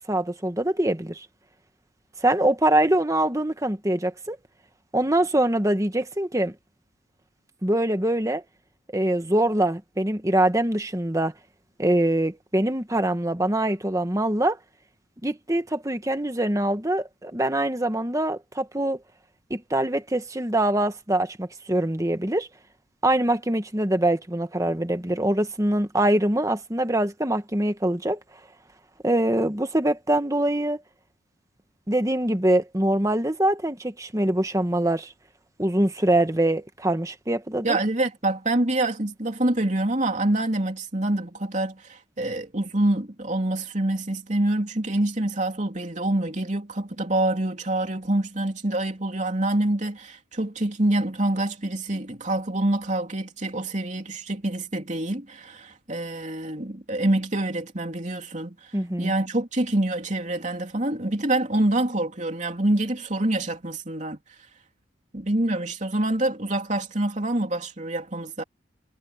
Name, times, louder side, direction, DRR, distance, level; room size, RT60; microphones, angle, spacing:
voice 1, 0.1-1.3 2.2-4.4 4.9-6.5 7.6-8.4 8.9-11.3 11.8-14.6 15.2-19.0 19.5-22.5 23.0-28.2 29.0-30.8 31.9-35.1 35.6-37.8 58.7-59.1, right 1 dB, 15° right, 1.4 m, -23 dB
voice 2, 37.6-64.2 65.1-68.4, right 1 dB, 40° right, 3.2 m, -26 dB
head